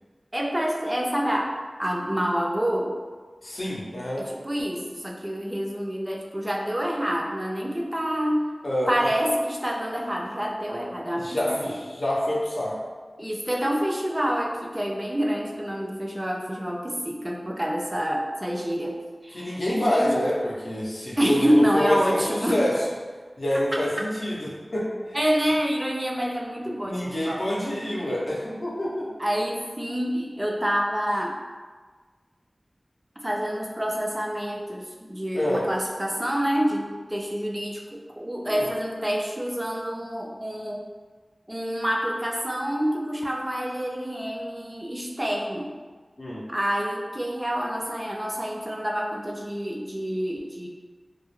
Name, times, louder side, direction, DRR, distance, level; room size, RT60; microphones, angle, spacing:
voice 1, 0.3-3.0 4.2-8.5 8.9-11.4 11.6-11.8 13.2-20.2 21.2-22.6 25.1-27.4 29.2-31.4 33.2-40.8 41.5-45.7 46.5-50.7, equal, 20° right, -1 dB, 0.3 m, -27 dB
voice 2, 3.4-4.3 8.6-8.9 11.2-12.8 19.3-22.7 23.4-24.9 26.9-29.1 35.3-35.7 38.5-38.7 46.2-46.4, left 1 dB, 65° left, -5 dB, 0.5 m, -27 dB
2.2 x 2.0 x 3.0 m, 1.4 s
wide cardioid pair, 60°, 0 cm